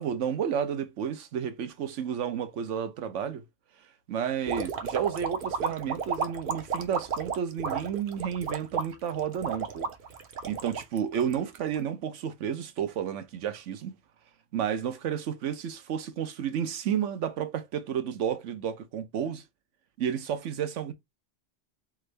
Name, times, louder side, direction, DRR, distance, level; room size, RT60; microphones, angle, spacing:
voice 1, 0.0-3.4 4.1-9.9 10.4-13.9 14.5-19.4 20.0-20.9, right 8 dB, 75° right, 1.1 m, -31 dB
sound 1, 4.5-11.8, right 6 dB, 50° right, 0.8 m, -33 dB
3.8 x 3.6 x 3.3 m
omnidirectional pair, 1.3 m